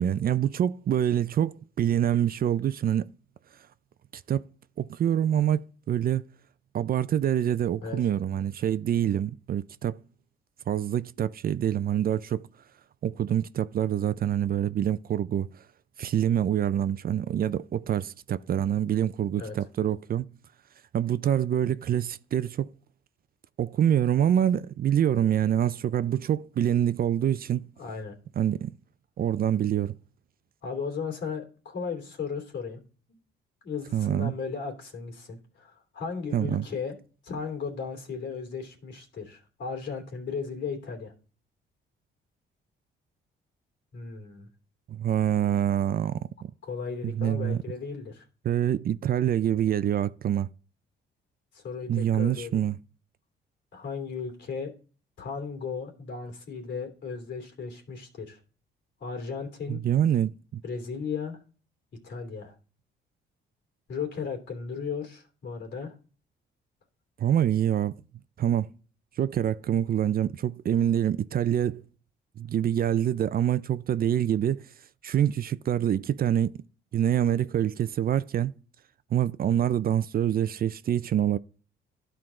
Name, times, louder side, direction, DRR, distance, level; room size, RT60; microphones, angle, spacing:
voice 1, 0.0-3.1 4.3-4.4 4.8-6.2 6.7-10.0 10.7-12.5 13.0-15.5 16.0-20.3 20.9-22.7 23.6-27.7 28.4-28.7 29.2-30.0 33.9-34.3 36.3-36.6 44.9-46.5 47.0-47.6 48.4-50.5 51.9-52.8 59.7-60.6 67.2-67.9 68.4-68.7 69.2-71.8 72.4-74.7 75.0-76.5 76.9-78.5 79.1-81.4, right 10 dB, 50° right, 0.5 m, -26 dB
voice 2, 27.8-28.1 30.6-32.8 33.6-37.0 37.2-41.1 43.9-44.5 46.6-48.2 51.5-52.7 53.7-54.7 55.2-58.4 59.0-59.8 60.6-61.4 62.0-62.5 63.9-65.9, left 5 dB, 65° left, 3.0 m, -35 dB
12.5 x 4.6 x 3.7 m
cardioid pair, 90°, 20 cm